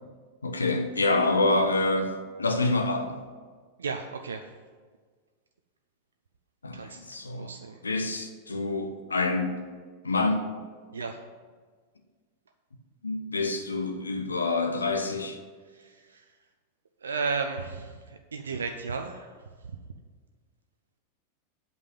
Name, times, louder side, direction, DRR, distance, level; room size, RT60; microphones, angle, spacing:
voice 1, 0.4-3.2 6.6-7.6 7.8-9.6 10.0-10.5 13.0-15.4, left 2 dB, 75° left, 6 dB, 0.9 m, -27 dB
voice 2, 3.8-4.4 6.7-7.0 7.4-7.8 10.9-11.2 15.7-16.2 17.0-19.3, right 4 dB, 70° right, 5 dB, 0.5 m, -34 dB
8.1 x 5.4 x 7.4 m, 1.5 s
figure-of-eight pair, 90°, 0 cm